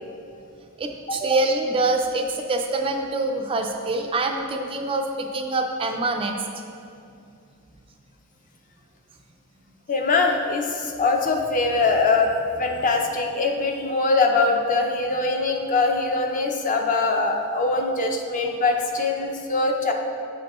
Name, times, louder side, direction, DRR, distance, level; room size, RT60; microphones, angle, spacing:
voice 1, 0.8-6.4, right 2 dB, 25° right, 3 dB, 0.3 m, -25 dB
voice 2, 9.9-19.9, left 3 dB, 35° left, 3 dB, 0.5 m, -22 dB
7.8 x 5.1 x 3.0 m, 2.5 s
head